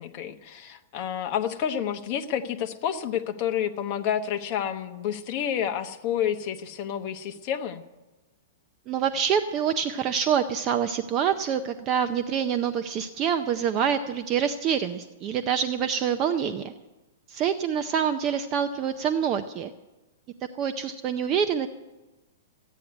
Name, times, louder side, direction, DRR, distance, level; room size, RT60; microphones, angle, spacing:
voice 1, 0.0-7.8, left 9 dB, 30° left, 6 dB, 1.0 m, -29 dB
voice 2, 8.9-16.7 17.3-19.7 20.6-21.7, right 8 dB, 20° right, 8 dB, 0.5 m, -26 dB
14.5 x 9.3 x 9.7 m, 1.1 s
hypercardioid pair, 175°, 0 cm